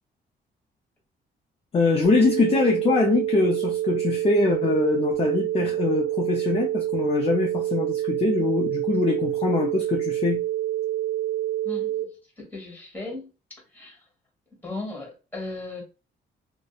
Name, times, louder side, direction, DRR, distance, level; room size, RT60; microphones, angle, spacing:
voice 1, 1.7-10.4, left 4 dB, 30° left, 2 dB, 0.5 m, -23 dB
sound 1, 2.0-12.0, right 13 dB, 45° right, 0.8 m, -27 dB
voice 2, 11.6-12.1 12.4-13.3 13.7-14.0 14.6-15.8, left 2 dB, 10° left, 0 dB, 1.3 m, -36 dB
2.6 x 2.1 x 2.3 m, 0.31 s
cardioid pair, 90°, 20 cm